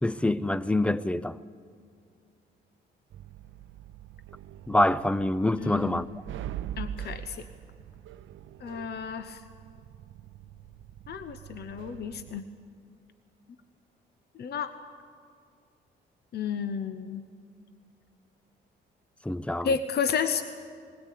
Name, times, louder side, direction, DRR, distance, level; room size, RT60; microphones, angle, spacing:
voice 1, 0.0-1.4 4.7-6.1 19.2-19.7, left 1 dB, 5° left, 0.5 m, -26 dB
sound 1, 3.1-12.4, right 11 dB, 80° right, 0.6 m, -43 dB
voice 2, 5.6-6.0 6.8-7.5 8.6-9.4 11.1-12.4 14.3-14.7 16.3-17.2 19.6-20.4, left 6 dB, 55° left, 0.9 m, -31 dB
21.0 x 17.0 x 8.4 m
cardioid pair, 90°, 20 cm